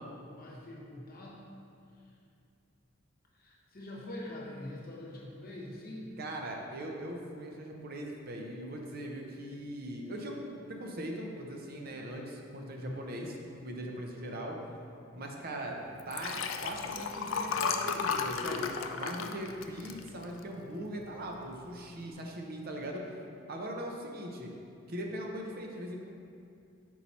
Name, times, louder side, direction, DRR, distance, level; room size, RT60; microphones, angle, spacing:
voice 1, 0.0-1.4 3.3-6.1 12.6-13.1 14.1-14.5, left 1 dB, 45° left, -3 dB, 1.0 m, -44 dB
voice 2, 6.2-13.4 13.6-14.6 15.1-15.8 16.1-23.0 23.5-24.5 24.9-26.1, right 1 dB, 50° right, 1 dB, 0.6 m, -40 dB
Liquid, 16.0-20.6 21.1-21.4 21.6-21.7, left 6 dB, 70° left, 0.4 m, -34 dB
5.6 x 4.6 x 4.1 m, 2.5 s
head